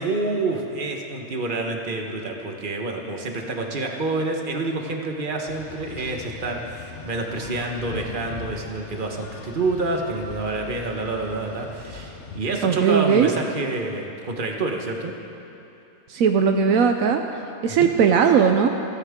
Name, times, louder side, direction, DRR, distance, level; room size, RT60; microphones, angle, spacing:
voice 1, 0.0-15.1 17.7-17.9, right 2 dB, 40° right, 2 dB, 1.4 m, -28 dB
sound 1, 5.5-12.4, left 4 dB, 55° left, 1.3 m, -40 dB
voice 2, 12.6-13.3 16.1-17.2 17.6-18.7, right 7 dB, 75° right, 5 dB, 1.1 m, -18 dB
28.5 x 9.9 x 3.7 m, 2.9 s
omnidirectional pair, 1.5 m